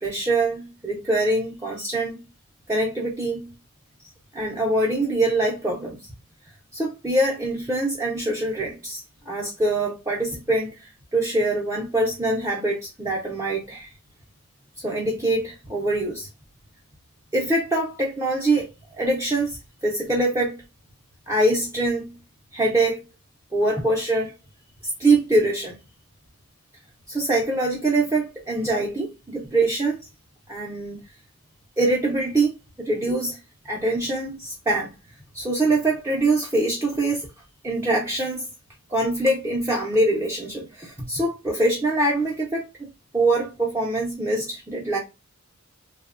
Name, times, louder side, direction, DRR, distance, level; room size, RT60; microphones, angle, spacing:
voice 1, 0.0-2.2 2.7-3.5 4.3-6.0 6.7-10.7 11.1-13.9 14.8-16.3 17.3-19.6 19.8-20.6 21.3-22.1 22.5-23.0 23.5-24.3 24.8-25.7 27.1-30.0 30.5-31.0 31.8-32.5 32.8-33.4 33.7-34.9 35.3-37.2 37.6-38.5 38.9-42.7 43.1-45.0, right 2 dB, 15° right, 0.5 m, -24 dB
2.8 x 2.0 x 2.3 m
head